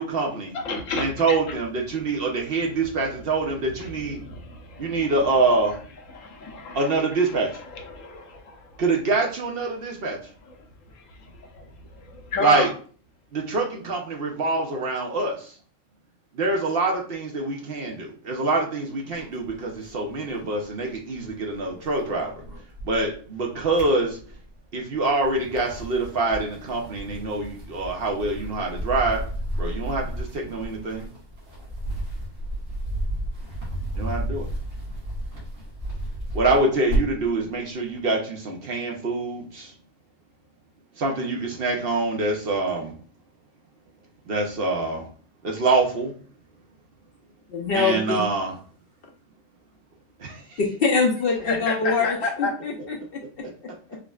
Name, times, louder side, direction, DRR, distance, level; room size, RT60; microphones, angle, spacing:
voice 1, 0.0-0.6 1.0-4.2 4.8-5.8 6.7-7.5 8.8-10.2 12.4-12.7 13.3-15.5 16.3-22.3 22.8-24.2 24.7-29.2 29.6-31.1 34.0-34.5 36.3-39.7 41.0-42.9 44.3-45.1 45.4-46.1 47.7-48.5 50.2-50.6 53.4-53.5, right 3 dB, 55° right, 1 dB, 0.8 m, -25 dB
voice 2, 0.5-1.4 4.1-5.0 6.1-6.8 7.7-8.6 11.6-11.7 12.1-12.7 51.5-52.5, left 3 dB, 85° left, 2 dB, 1.1 m, -30 dB
sound 1, 19.1-21.3 21.6-23.2 23.5-24.6 25.1-37.3, right 1 dB, 75° right, 2.0 m, -32 dB
voice 3, 47.5-48.2 50.8-54.0, left 4 dB, 60° left, 1 dB, 0.6 m, -25 dB
4.7 x 2.1 x 2.3 m, 0.42 s
omnidirectional pair, 1.3 m